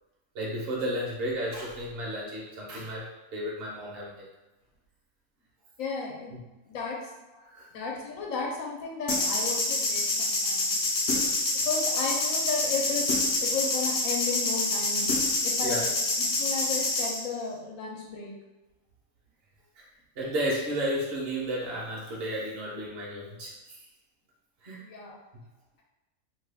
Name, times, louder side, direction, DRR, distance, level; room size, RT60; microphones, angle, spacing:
voice 1, 0.3-4.2 6.3-6.4 7.4-7.7 15.6-15.8 20.2-23.8 24.6-24.8, equal, 50° right, -4 dB, 1.0 m, -33 dB
voice 2, 5.8-6.4 6.7-7.0 7.7-10.8 11.6-13.1 13.4-15.1 15.4-15.9 16.2-18.3 24.8-25.2, left 4 dB, 75° left, -1 dB, 1.1 m, -34 dB
sound 1, 9.1-17.2, left 2 dB, 55° left, 0.8 m, -27 dB
2.8 x 2.3 x 3.4 m, 1.1 s
omnidirectional pair, 1.4 m